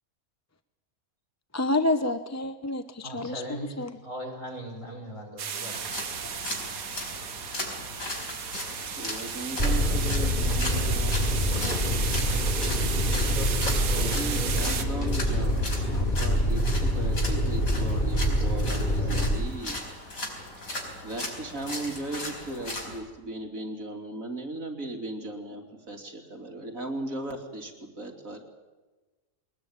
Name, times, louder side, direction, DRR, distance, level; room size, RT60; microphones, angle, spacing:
voice 1, 1.5-4.0 5.5-5.7 6.3-6.4, left 2 dB, 15° left, 9 dB, 0.6 m, -29 dB
voice 2, 3.0-6.0, right 1 dB, 60° left, 1 dB, 6.3 m, -39 dB
sound 1, 5.4-14.8, right 7 dB, 85° right, 1.6 m, -34 dB
sound 2, 5.7-23.0, left 1 dB, 80° left, 5.1 m, -38 dB
voice 3, 8.8-11.2 12.7-13.4 13.7-19.8 20.6-20.7 21.0-28.4, right 2 dB, 70° right, 2 dB, 3.4 m, -37 dB
sound 3, 9.6-19.4, equal, 35° left, 3.5 m, -26 dB
22.5 x 19.5 x 8.7 m, 1.2 s
omnidirectional pair, 1.5 m